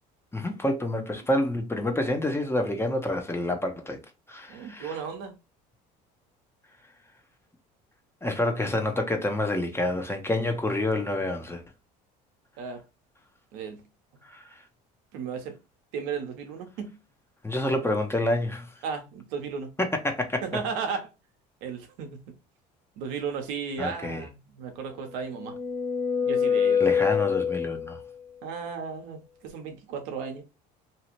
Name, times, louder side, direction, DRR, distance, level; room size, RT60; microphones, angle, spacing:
voice 1, 0.3-4.0 4.3-4.9 8.2-11.6 14.3-14.4 17.4-18.7 19.8-20.4 23.8-24.2 26.8-28.0, left 1 dB, 10° left, 0.7 m, -28 dB
voice 2, 4.5-5.3 12.6-12.8 13.5-13.8 15.1-15.5 15.9-17.0 18.8-19.7 20.4-21.1 21.6-22.2 23.0-25.6 26.2-26.8 28.4-30.4, right 6 dB, 75° right, 0.8 m, -35 dB
sound 1, 25.0-28.1, left 7 dB, 45° left, 1.4 m, -25 dB
2.8 x 2.4 x 3.0 m
hypercardioid pair, 75°, 21 cm